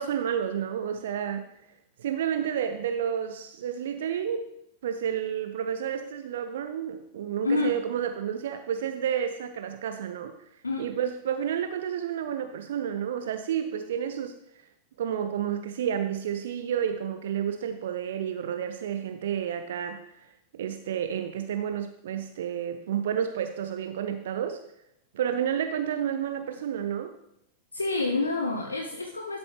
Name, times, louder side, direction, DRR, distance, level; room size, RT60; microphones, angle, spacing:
voice 1, 0.0-1.5 2.0-4.5 4.8-10.4 10.8-14.4 15.0-20.3 20.5-24.6 25.1-27.1, right 9 dB, 60° right, 8 dB, 0.5 m, -30 dB
voice 2, 7.4-7.8 10.6-10.9 27.7-29.4, left 3 dB, 80° left, 3 dB, 0.7 m, -28 dB
11.5 x 7.1 x 3.2 m, 0.80 s
figure-of-eight pair, 90°, 0 cm